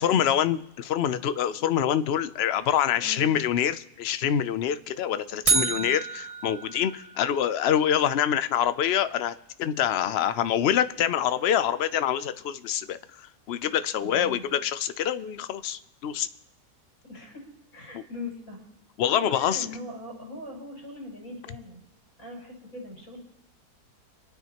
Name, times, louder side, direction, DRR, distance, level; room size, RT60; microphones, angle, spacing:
voice 1, 0.0-16.3 17.9-18.0 19.0-19.7, left 9 dB, 75° left, 12 dB, 0.5 m, -26 dB
voice 2, 2.9-3.3 5.5-6.0 13.9-14.4 17.0-17.5 17.7-18.6 19.0-21.8 22.2-23.2, left 1 dB, 60° left, -2 dB, 6.4 m, -41 dB
sound 1, 5.5-7.6, right 5 dB, 35° right, 0.6 m, -28 dB
27.0 x 9.2 x 2.9 m, 0.97 s
omnidirectional pair, 1.7 m